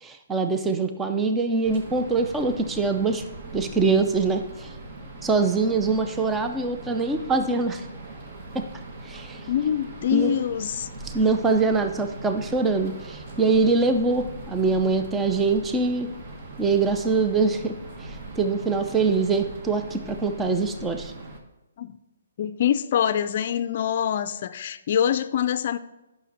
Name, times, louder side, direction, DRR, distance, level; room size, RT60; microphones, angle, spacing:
voice 1, 0.0-3.2 3.5-4.7 5.2-7.8 9.1-9.4 10.1-10.3 11.0-16.1 16.6-17.7 18.4-21.1, right 4 dB, 10° right, 6 dB, 0.5 m, -23 dB
sound 1, 1.6-21.4, right 2 dB, 40° right, 1.2 m, -40 dB
voice 2, 9.5-10.9 21.8-22.0 22.4-25.8, left 9 dB, 45° left, 13 dB, 0.4 m, -24 dB
9.1 x 6.0 x 4.3 m, 1.0 s
hypercardioid pair, 155°, 0 cm